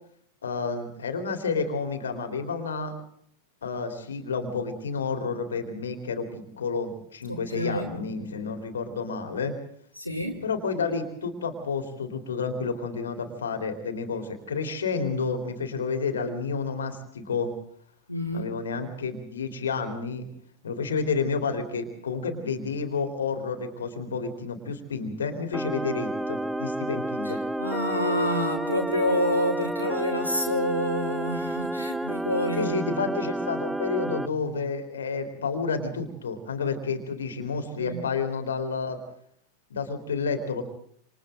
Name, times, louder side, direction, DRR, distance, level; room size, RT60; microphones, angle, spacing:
voice 1, 0.4-2.9 3.6-9.6 10.4-17.5 18.3-20.3 20.6-27.4 32.6-39.0 39.7-40.6, left 4 dB, 65° left, 3.8 m, -30 dB
voice 2, 7.3-7.9 9.9-10.4 18.1-18.5 27.2-32.8 37.8-38.0, left 1 dB, 90° left, 3.2 m, -28 dB
sound 1, 25.5-34.3, right 1 dB, 5° right, 0.8 m, -30 dB
28.0 x 28.0 x 3.9 m
figure-of-eight pair, 90°, 0 cm